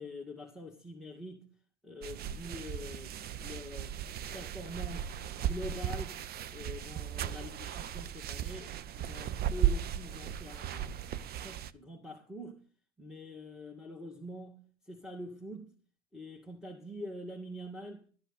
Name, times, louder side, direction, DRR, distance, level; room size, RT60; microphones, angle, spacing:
voice 1, 0.0-1.5 1.8-4.0 4.3-5.1 5.4-6.2 6.5-12.6 13.0-15.7 16.1-18.1, left 1 dB, ahead, 1.9 m, -45 dB
sound 1, 2.0-11.7, right 10 dB, 30° right, 0.7 m, -36 dB
12.5 x 12.0 x 3.9 m
figure-of-eight pair, 75°, 33 cm